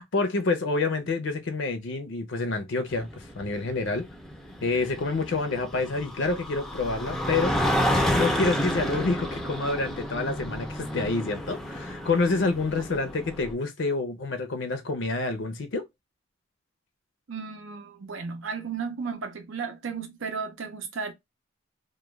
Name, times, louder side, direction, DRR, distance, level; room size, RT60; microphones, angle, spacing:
voice 1, 0.0-4.0 4.6-7.5 8.1-15.8, left 3 dB, 65° left, 0.5 m, -28 dB
sound 1, 2.9-13.5, equal, ahead, 0.4 m, -30 dB
voice 2, 17.3-21.1, right 5 dB, 80° right, 0.6 m, -34 dB
2.3 x 2.1 x 3.0 m
head